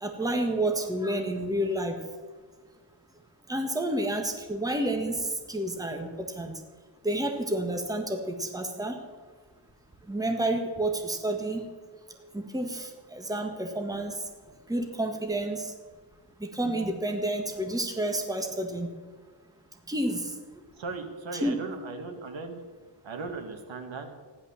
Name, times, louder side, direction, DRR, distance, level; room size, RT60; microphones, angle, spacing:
voice 1, 0.0-2.0 3.5-6.5 7.0-9.0 10.1-11.6 12.3-14.1 14.7-15.7 16.4-18.9 19.9-20.4 21.3-21.6, right 1 dB, 10° right, 4 dB, 1.6 m, -30 dB
voice 2, 20.8-22.6 23.0-24.1, right 4 dB, 75° right, 4 dB, 2.1 m, -37 dB
14.5 x 11.0 x 7.2 m, 1.4 s
wide cardioid pair, 125°, 46 cm